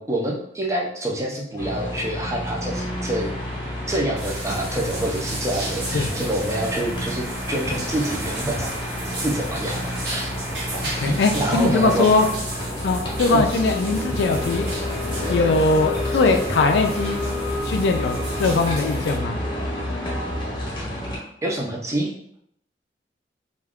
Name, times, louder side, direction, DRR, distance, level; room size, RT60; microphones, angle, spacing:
voice 1, 0.0-3.4 3.9-8.7 9.0-10.3 11.0-12.1 13.3-13.5 15.2-15.3 21.4-22.1, right 1 dB, 15° right, -2 dB, 0.5 m, -27 dB
sound 1, 1.6-21.2, left 1 dB, 30° left, 0.8 m, -29 dB
sound 2, 2.7-12.3, equal, 35° right, 0.9 m, -37 dB
sound 3, 4.2-19.2, right 2 dB, 75° right, 0.9 m, -36 dB
voice 2, 11.0-12.3 12.8-14.8 15.3-17.2 17.7-19.4, left 3 dB, 85° left, 5 dB, 0.3 m, -21 dB
2.4 x 2.3 x 3.4 m, 0.72 s
head